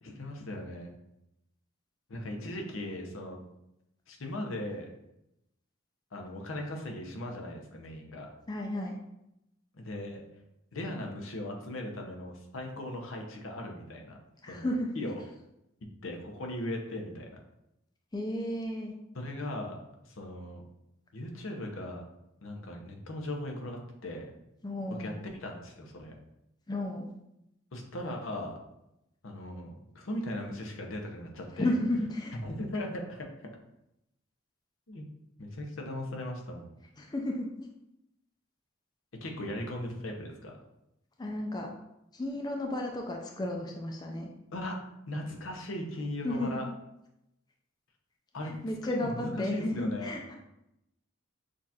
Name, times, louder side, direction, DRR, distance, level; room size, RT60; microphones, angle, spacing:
voice 1, 0.0-0.9 2.1-3.4 4.1-4.9 6.1-8.3 9.7-10.2 10.7-14.2 14.5-14.7 14.9-15.2 16.0-17.3 19.1-20.6 21.1-22.0 22.4-24.3 25.0-25.1 25.4-26.1 27.7-28.5 29.2-31.7 32.4-33.5 34.9-35.0 35.4-36.7 39.2-40.6 44.5-44.8 45.1-46.7 48.3-48.5 48.9-50.2, left 1 dB, 85° left, 2 dB, 0.8 m, -38 dB
voice 2, 8.5-8.9 14.4-14.9 18.1-18.9 24.6-25.2 26.7-27.1 31.6-32.3 37.0-37.5 41.2-41.7 42.1-44.3 46.2-46.5 48.4-50.4, left 1 dB, 20° left, 1 dB, 0.4 m, -33 dB
6.3 x 2.5 x 2.8 m, 0.84 s
head